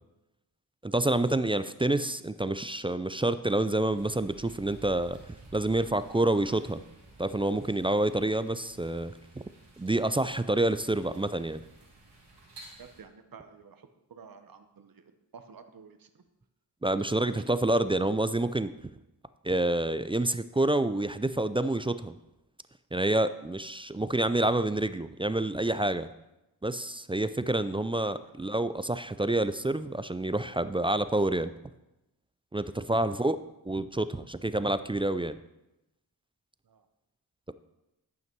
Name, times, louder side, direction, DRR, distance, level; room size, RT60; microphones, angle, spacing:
voice 1, 0.8-6.8 7.2-9.1 9.8-11.6 16.8-18.7 19.4-22.2 22.9-26.1 26.6-31.5 32.5-33.4 33.6-35.4, right 1 dB, 15° right, 13 dB, 0.3 m, -28 dB
sound 1, 3.9-13.0, right 2 dB, 85° right, 2.7 m, -53 dB
voice 2, 12.8-13.8 14.1-15.0 15.3-16.1 17.0-17.2 28.2-28.3 36.7-36.8, right 6 dB, 55° right, 8 dB, 1.0 m, -51 dB
11.0 x 5.8 x 4.6 m, 0.94 s
cardioid pair, 45°, 42 cm